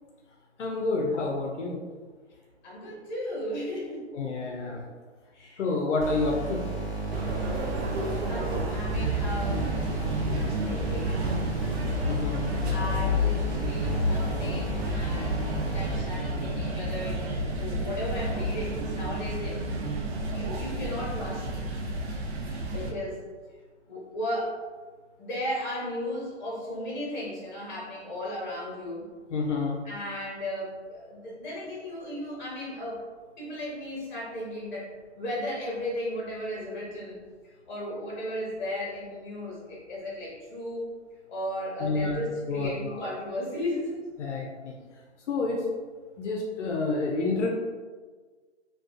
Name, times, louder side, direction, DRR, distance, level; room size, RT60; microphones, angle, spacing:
voice 1, 0.6-1.8 4.1-4.8 5.6-6.6 12.1-12.4 29.3-29.8 41.8-42.2 42.5-43.1 44.2-44.7 45.3-45.6 46.2-47.5, left 3 dB, 85° left, -1 dB, 0.6 m, -28 dB
voice 2, 2.6-4.1 5.3-5.7 8.2-9.7 10.3-11.5 12.7-19.6 20.1-21.5 22.6-23.3 23.9-24.6 25.2-29.1 29.8-33.0 33.4-37.2 37.7-40.9 41.3-44.0, left 1 dB, 40° left, -4 dB, 1.0 m, -35 dB
sound 1, 6.0-16.0, right 3 dB, 10° right, 1.2 m, -34 dB
sound 2, 7.1-22.9, equal, 65° right, 0.5 m, -30 dB
2.3 x 2.3 x 2.4 m, 1.4 s
hypercardioid pair, 155°, 35 cm